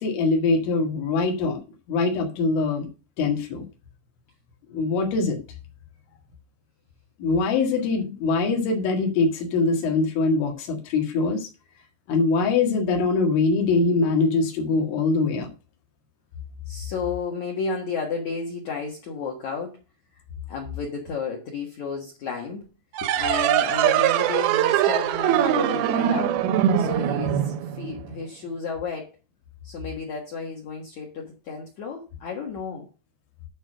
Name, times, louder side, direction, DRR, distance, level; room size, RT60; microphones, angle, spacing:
voice 1, 0.0-1.6 1.9-2.9 3.2-3.6 4.7-5.4 7.2-11.5 12.1-15.5, left 3 dB, 80° left, 2 dB, 4.3 m, -23 dB
voice 2, 16.7-19.8 20.1-20.2 20.5-22.7 23.0-26.4 26.8-29.1 29.6-32.9, left 5 dB, 60° left, 0 dB, 2.0 m, -32 dB
sound 1, 22.9-28.2, right 11 dB, 80° right, 2.2 m, -22 dB
11.0 x 4.5 x 6.4 m, 0.31 s
omnidirectional pair, 5.4 m